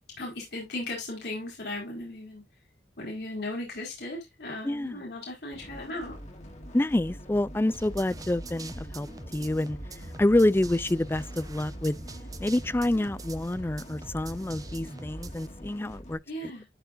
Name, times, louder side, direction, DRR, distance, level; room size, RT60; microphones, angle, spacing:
voice 1, 0.2-2.4 3.0-6.1 16.3-16.7, left 1 dB, 60° left, 4.5 m, -36 dB
voice 2, 4.6-5.0 6.7-9.8 10.2-12.0 12.4-16.5, left 1 dB, 10° left, 0.3 m, -27 dB
sound 1, 5.5-16.1, equal, 40° left, 2.4 m, -45 dB
sound 2, 7.7-15.5, right 2 dB, 20° right, 0.7 m, -43 dB
13.0 x 4.6 x 2.5 m
head